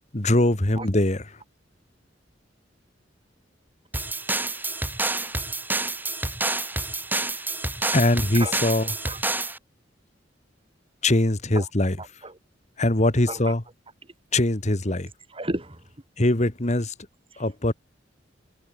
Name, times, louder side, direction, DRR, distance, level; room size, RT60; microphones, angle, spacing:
voice 1, 0.1-1.2 7.9-8.9 11.0-12.0 12.8-13.6 14.3-15.1 16.2-16.9 17.4-17.7, left 1 dB, 40° left, 1.9 m, -22 dB
sound 1, 3.9-9.6, right 2 dB, 10° right, 3.8 m, -28 dB
voice 2, 8.8-9.2 11.5-11.7 12.0-12.4 13.3-13.5 15.3-15.8 17.4-17.5, right 2 dB, 30° right, 5.1 m, -33 dB
head